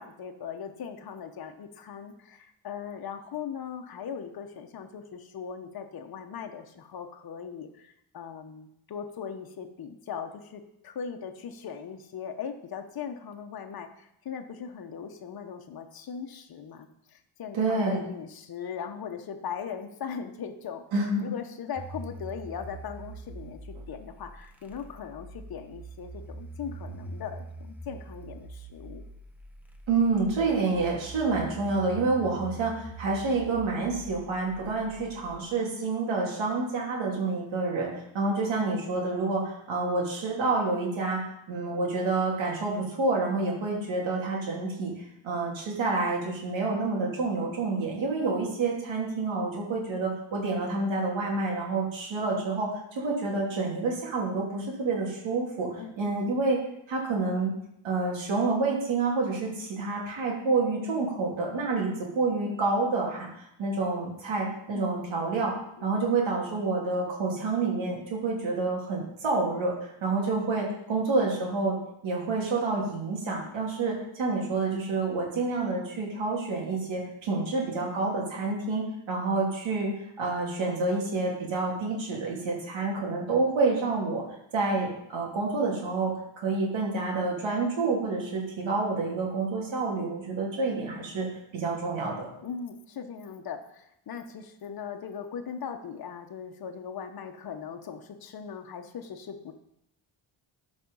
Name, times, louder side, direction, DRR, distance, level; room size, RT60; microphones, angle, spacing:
voice 1, 0.0-20.8 21.2-29.0 55.8-56.1 64.7-65.2 65.8-66.0 92.4-99.5, left 7 dB, 50° left, 5 dB, 1.1 m, -39 dB
voice 2, 17.5-18.0 20.9-21.3 29.9-41.2 41.5-56.6 56.9-57.5 57.8-63.3 63.6-65.5 65.8-71.8 72.0-79.9 80.2-84.2 84.5-91.3 91.5-92.3, right 3 dB, 70° right, -3 dB, 3.0 m, -28 dB
sound 1, 21.8-35.4, right 2 dB, 5° right, 0.9 m, -44 dB
13.5 x 5.4 x 5.4 m, 0.79 s
wide cardioid pair, 145°, 47 cm